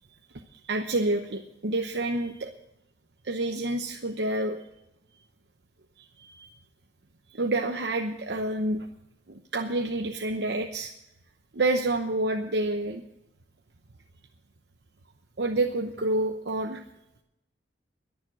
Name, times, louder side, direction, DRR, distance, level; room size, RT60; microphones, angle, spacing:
voice 1, 0.6-2.5 3.2-4.6 6.2-6.5 7.3-8.9 9.3-10.9 11.5-13.0 15.4-16.8, right 2 dB, 75° right, 3 dB, 0.9 m, -28 dB
21.5 x 7.4 x 6.2 m, 0.83 s
head